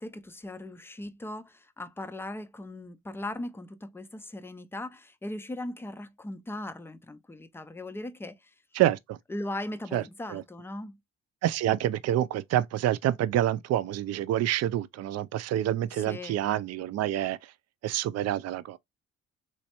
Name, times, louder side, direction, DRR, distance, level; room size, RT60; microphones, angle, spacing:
voice 1, 0.0-8.4 9.3-11.0 16.0-16.4, left 1 dB, 10° left, 0.4 m, -38 dB
voice 2, 8.7-9.2 9.9-10.0 10.3-10.4 11.4-17.4 17.8-18.8, right 12 dB, 55° right, 0.4 m, -27 dB
3.2 x 3.1 x 2.9 m
cardioid pair, 90°, 30 cm